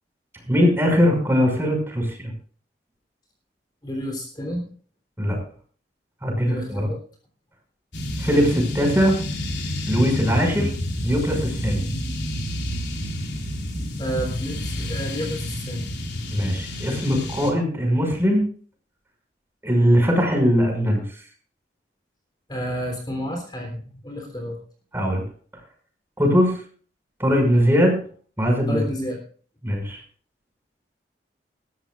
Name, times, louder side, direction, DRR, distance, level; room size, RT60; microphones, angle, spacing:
voice 1, 0.5-2.3 5.2-5.4 6.2-6.9 8.2-9.2 9.9-10.7 11.0-11.8 16.3-18.5 19.6-21.0 24.9-25.2 26.2-26.6 27.2-28.0 28.4-28.8 29.6-30.0, equal, 15° right, 2 dB, 5.9 m, -20 dB
voice 2, 3.8-4.7 6.5-7.0 10.6-10.7 14.0-15.9 22.5-24.6 28.7-29.2, equal, 25° left, 2 dB, 3.5 m, -30 dB
sound 1, 7.9-17.5, left 1 dB, 75° left, 3.7 m, -29 dB
21.0 x 13.5 x 2.5 m, 0.43 s
head